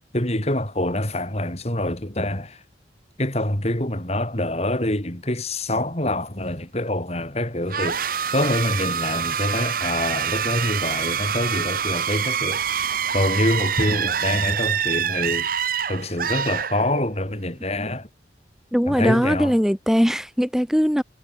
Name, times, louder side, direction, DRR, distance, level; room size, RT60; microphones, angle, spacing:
voice 1, 0.0-2.6 3.2-12.7 13.1-15.5 15.9-18.1 18.9-19.5, left 1 dB, 35° left, 4.2 m, -25 dB
sound 1, 7.7-17.3, right 7 dB, 50° right, 1.6 m, -26 dB
voice 2, 18.7-21.0, equal, 5° right, 1.6 m, -20 dB
head